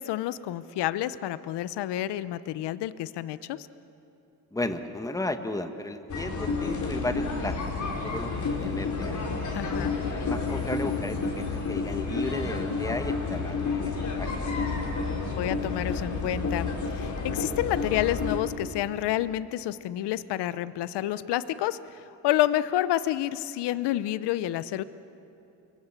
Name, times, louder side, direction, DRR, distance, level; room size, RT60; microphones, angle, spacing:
voice 1, 0.0-3.7 9.5-9.9 14.8-14.9 15.4-16.7 17.0-24.8, left 13 dB, 85° left, 15 dB, 0.8 m, -29 dB
voice 2, 4.5-9.2 10.1-14.3, left 2 dB, 10° left, 8 dB, 1.4 m, -34 dB
sound 1, 6.1-18.4, left 4 dB, 45° left, 4.7 m, -30 dB
28.0 x 22.5 x 7.4 m, 2.9 s
cardioid pair, 95°, 40 cm